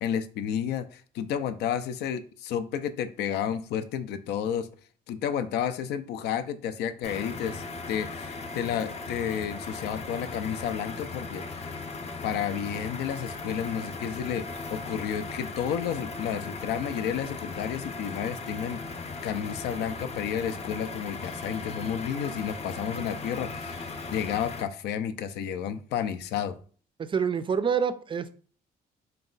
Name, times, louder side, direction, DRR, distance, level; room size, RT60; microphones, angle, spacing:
voice 1, 0.0-4.7 5.1-11.6 12.2-14.5 14.7-18.8 19.2-26.6, left 8 dB, 85° left, 11 dB, 0.4 m, -31 dB
sound 1, 7.0-24.6, left 3 dB, 40° left, 0.6 m, -38 dB
voice 2, 27.0-28.3, right 6 dB, 30° right, 12 dB, 0.3 m, -27 dB
3.9 x 2.2 x 3.8 m, 0.43 s
cardioid pair, 95°, 17 cm